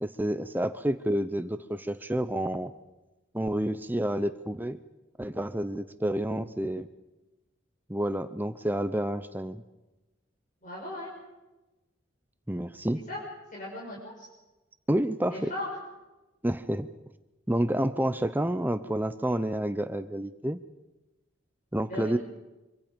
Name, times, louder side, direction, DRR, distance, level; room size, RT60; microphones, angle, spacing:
voice 1, 0.0-2.7 3.3-4.8 5.2-6.9 7.9-9.6 12.5-13.0 14.9-15.5 16.4-16.9 17.5-20.6 21.7-22.2, right 1 dB, 10° right, 11 dB, 0.7 m, -29 dB
voice 2, 10.6-11.1 13.1-13.2 13.5-14.3 15.3-15.7 21.9-22.2, left 1 dB, 40° left, -4 dB, 5.8 m, -37 dB
25.5 x 25.0 x 5.2 m, 1.1 s
head